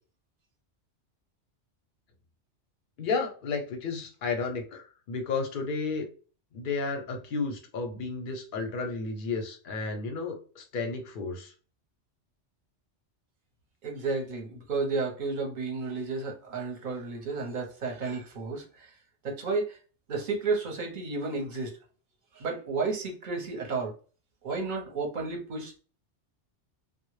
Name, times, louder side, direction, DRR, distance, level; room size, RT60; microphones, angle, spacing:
voice 1, 3.0-6.0 6.5-11.5, left 4 dB, 60° left, 4 dB, 0.6 m, -32 dB
voice 2, 13.8-18.9 19.2-19.8 20.1-21.7 22.3-23.9 24.4-25.8, right 4 dB, 50° right, 1 dB, 0.7 m, -32 dB
2.0 x 2.0 x 3.0 m, 0.38 s
omnidirectional pair, 1.2 m